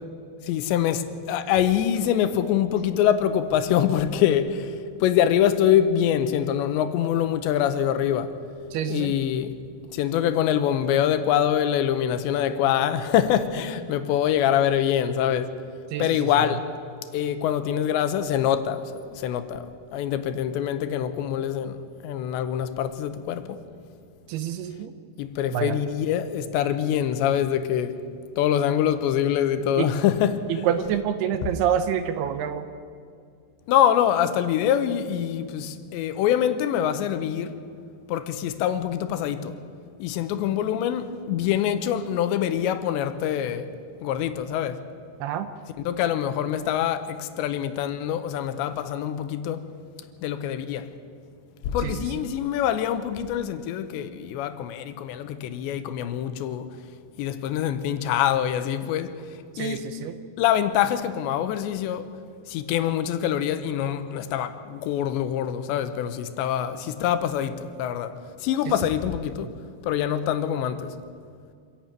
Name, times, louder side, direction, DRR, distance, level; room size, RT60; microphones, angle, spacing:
voice 1, 0.5-8.3 8.9-9.6 9.9-15.6 16.0-16.7 17.1-21.8 22.0-23.6 25.2-28.0 28.4-30.5 33.7-37.6 38.1-39.5 40.0-43.7 44.0-44.8 45.9-49.6 50.2-50.9 51.7-56.7 57.2-59.1 59.6-59.8 60.4-62.1 62.5-69.5 69.8-70.9, left 10 dB, 80° left, 3.1 m, -24 dB
voice 2, 8.7-9.2 15.9-16.3 24.3-24.9 25.5-25.8 29.8-29.9 30.6-32.7 45.2-45.5 51.8-52.2 59.6-60.1 69.4-69.5, right 9 dB, 75° right, 2.6 m, -27 dB
26.0 x 11.0 x 9.0 m
omnidirectional pair, 5.2 m